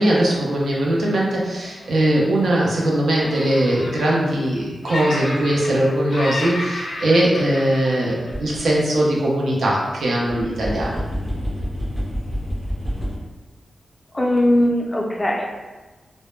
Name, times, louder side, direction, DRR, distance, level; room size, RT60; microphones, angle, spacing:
voice 1, 0.0-11.0, right 1 dB, 85° right, -4 dB, 0.5 m, -20 dB
Laughter, 1.6-2.9 3.2-4.6 4.8-5.8 6.1-8.7, left 1 dB, 55° left, 0.6 m, -32 dB
sound 1, 8.3-8.6 9.0-9.1 10.3-13.2, equal, 35° right, 0.7 m, -27 dB
voice 2, 14.1-15.5, left 1 dB, 20° left, 0 dB, 0.3 m, -19 dB
2.1 x 2.0 x 3.0 m, 1.2 s
wide cardioid pair, 140°, 0 cm